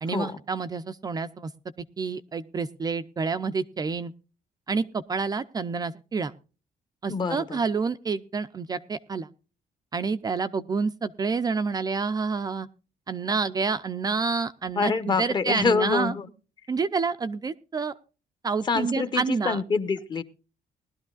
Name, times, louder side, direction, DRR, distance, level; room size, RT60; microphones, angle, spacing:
voice 1, 0.0-1.5 2.0-4.1 4.7-6.3 7.0-9.3 9.9-12.7 13.1-16.1 16.7-17.9 18.4-19.6, right 4 dB, 25° right, 10 dB, 0.5 m, -28 dB
voice 2, 7.1-7.6 14.7-16.3 18.6-20.2, left 4 dB, 30° left, 11 dB, 1.0 m, -26 dB
19.5 x 12.5 x 2.4 m, 0.34 s
cardioid pair, 165°, 15 cm